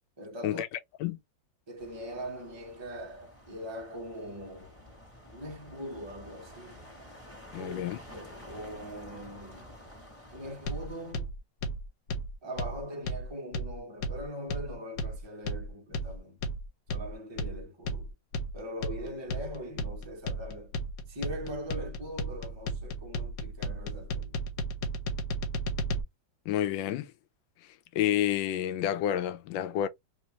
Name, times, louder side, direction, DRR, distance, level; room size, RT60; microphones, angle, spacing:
voice 1, 0.2-0.6 1.1-1.2 1.7-4.7 5.3-6.8 7.5-7.8 8.1-9.8 10.3-11.3 12.4-16.4 16.9-18.1 18.5-20.7 21.1-24.4, equal, 20° right, 1.0 m, -41 dB
sound 1, 1.8-11.1, equal, 10° left, 1.7 m, -50 dB
voice 2, 7.5-8.0 26.5-27.1 27.9-29.9, left 11 dB, 90° left, 1.3 m, -29 dB
sound 2, 10.7-26.0, equal, 70° left, 1.2 m, -34 dB
3.3 x 3.0 x 2.9 m
omnidirectional pair, 2.0 m